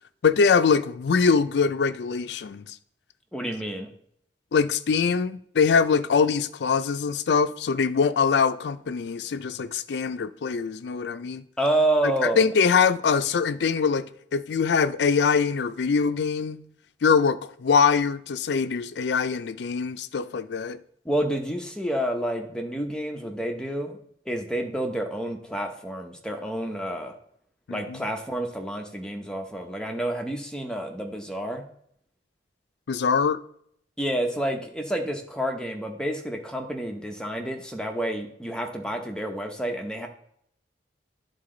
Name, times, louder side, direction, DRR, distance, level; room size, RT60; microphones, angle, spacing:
voice 1, 0.2-2.8 4.5-11.4 12.2-14.1 14.3-16.6 17.0-20.8 27.7-28.0 32.9-33.4, left 5 dB, 70° left, 0.4 m, -23 dB
voice 2, 3.3-3.9 11.6-12.4 21.0-24.0 24.3-27.2 27.7-31.6 34.0-40.1, right 1 dB, 5° left, 0.8 m, -29 dB
11.0 x 3.8 x 3.8 m
head